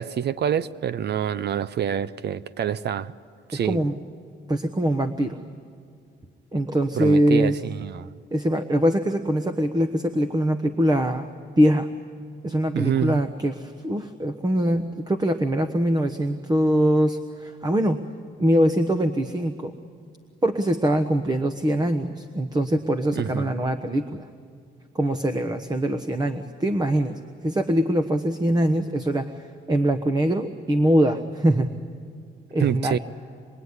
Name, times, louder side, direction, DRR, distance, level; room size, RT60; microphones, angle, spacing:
voice 1, 0.0-3.1 3.5-3.8 6.9-8.1 12.7-13.2 23.2-23.5 32.6-33.0, right 9 dB, 60° right, 16 dB, 0.7 m, -26 dB
voice 2, 3.5-4.0 4.5-5.4 6.5-7.6 8.3-11.9 12.4-18.0 18.4-19.7 20.4-24.3 24.9-31.7 32.5-33.0, equal, 20° right, 8 dB, 1.1 m, -23 dB
25.5 x 22.5 x 9.8 m, 2.3 s
cardioid pair, 90°, 20 cm